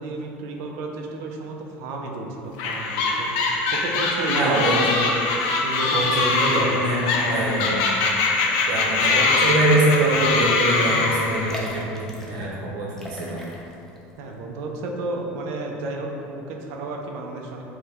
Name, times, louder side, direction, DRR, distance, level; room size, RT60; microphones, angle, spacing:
voice 1, 0.0-4.7 5.6-6.8 14.2-17.6, right 2 dB, 60° right, 1 dB, 0.4 m, -32 dB
sound 1, 2.6-11.6, left 3 dB, 70° left, 0.4 m, -23 dB
voice 2, 4.3-5.0 5.9-7.8 8.5-13.4, right 2 dB, 80° right, -4 dB, 0.8 m, -24 dB
sound 2, 10.0-10.2 10.5-10.6 11.3-12.5 12.9-14.0 14.3-14.4, left 1 dB, 10° left, 0.4 m, -37 dB
4.5 x 2.1 x 3.4 m, 2.9 s
cardioid pair, 160°, 5 cm